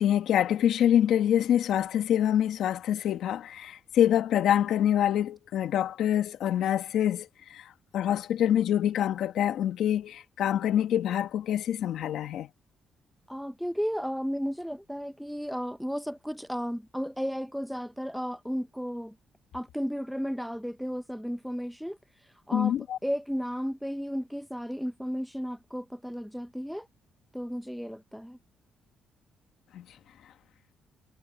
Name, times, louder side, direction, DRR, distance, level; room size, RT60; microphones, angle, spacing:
voice 1, 0.0-7.3 7.5-7.6 7.9-12.5 22.5-23.0 29.7-29.8, left 10 dB, 75° left, 1.9 m, -25 dB
voice 2, 13.3-19.1 19.5-22.0 22.5-22.7 23.0-26.9 27.3-28.4, equal, ahead, 1.0 m, -34 dB
cardioid pair, 90°, 0 cm